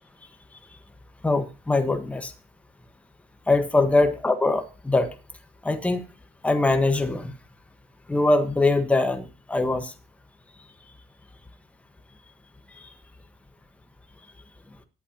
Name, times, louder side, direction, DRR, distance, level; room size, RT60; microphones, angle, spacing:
voice 1, 1.2-2.3 3.5-5.1 5.6-6.0 6.4-7.4 8.1-9.9 12.7-12.9, left 2 dB, 10° left, 8 dB, 1.3 m, -22 dB
20.0 x 8.5 x 2.9 m, 0.32 s
cardioid pair, 110°, 13 cm